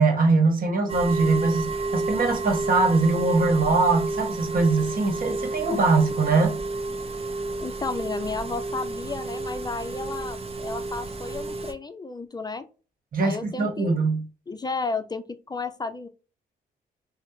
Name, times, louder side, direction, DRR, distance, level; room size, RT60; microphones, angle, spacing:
voice 1, 0.0-6.6 13.1-14.2, right 3 dB, 50° right, 1.1 m, -22 dB
sound 1, 0.9-11.7, right 2 dB, 30° right, 0.6 m, -30 dB
voice 2, 7.6-12.7 13.2-13.9 14.5-16.1, left 4 dB, 20° left, 0.4 m, -33 dB
3.4 x 2.0 x 2.7 m
supercardioid pair, 55°, 19 cm